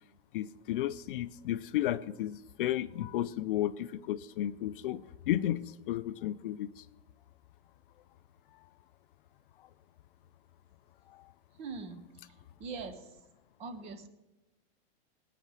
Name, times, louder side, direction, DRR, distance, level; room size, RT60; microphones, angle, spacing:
voice 1, 0.3-6.9 9.6-9.7 11.1-11.3, left 13 dB, 55° left, 15 dB, 0.4 m, -33 dB
voice 2, 11.6-12.0 12.6-13.0 13.6-14.1, right 4 dB, 20° right, 10 dB, 0.8 m, -41 dB
20.0 x 9.1 x 4.8 m, 1.0 s
supercardioid pair, 175°, 33 cm